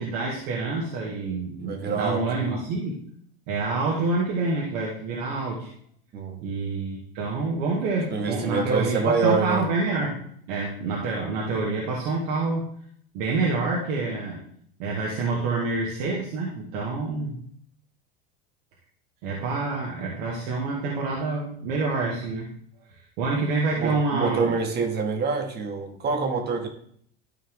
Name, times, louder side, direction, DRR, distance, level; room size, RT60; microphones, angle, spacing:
voice 1, 0.0-3.0 3.5-5.7 6.4-10.2 10.5-12.7 13.1-14.4 14.8-17.4 19.2-22.5 23.2-24.5, right 3 dB, 65° right, -2 dB, 2.1 m, -27 dB
voice 2, 1.7-2.5 6.1-6.4 8.1-9.6 23.8-26.7, right 4 dB, 35° right, 4 dB, 2.1 m, -26 dB
13.0 x 4.5 x 3.8 m, 0.64 s
hypercardioid pair, 100°, 29 cm